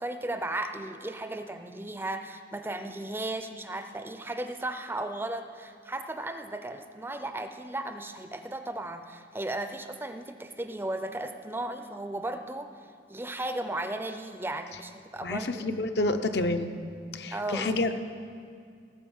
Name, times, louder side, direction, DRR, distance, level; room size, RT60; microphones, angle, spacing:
voice 1, 0.0-12.7 13.1-15.7 17.3-17.8, right 1 dB, 15° right, 8 dB, 0.5 m, -35 dB
voice 2, 15.2-16.7 17.1-18.1, left 2 dB, 65° left, 8 dB, 0.7 m, -29 dB
18.5 x 7.1 x 5.4 m, 2.3 s
head